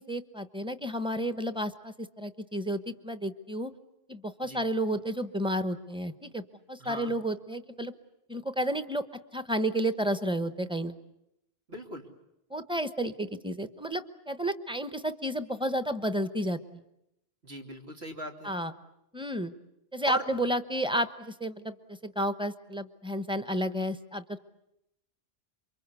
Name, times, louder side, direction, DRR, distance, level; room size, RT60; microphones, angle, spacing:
voice 1, 0.0-3.7 4.1-7.9 8.3-9.0 9.3-11.0 12.5-16.8 18.4-18.7 19.1-19.5 19.9-24.4, equal, 5° right, 11 dB, 1.0 m, -31 dB
voice 2, 6.8-7.1 11.7-12.1 17.4-18.5 20.0-20.2, right 1 dB, 85° right, 2 dB, 3.2 m, -37 dB
28.0 x 24.0 x 8.3 m, 0.84 s
omnidirectional pair, 1.1 m